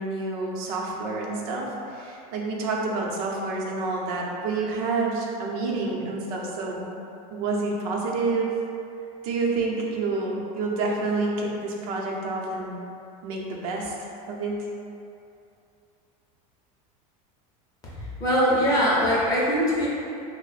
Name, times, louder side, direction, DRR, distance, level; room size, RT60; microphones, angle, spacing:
voice 1, 0.0-6.9 7.3-8.5 9.2-12.8 13.2-13.9 14.3-14.5, right 3 dB, 75° right, -2 dB, 0.6 m, -28 dB
voice 2, 18.0-19.9, equal, 20° left, -7 dB, 0.6 m, -22 dB
3.0 x 2.1 x 4.0 m, 2.6 s
cardioid pair, 160°, 19 cm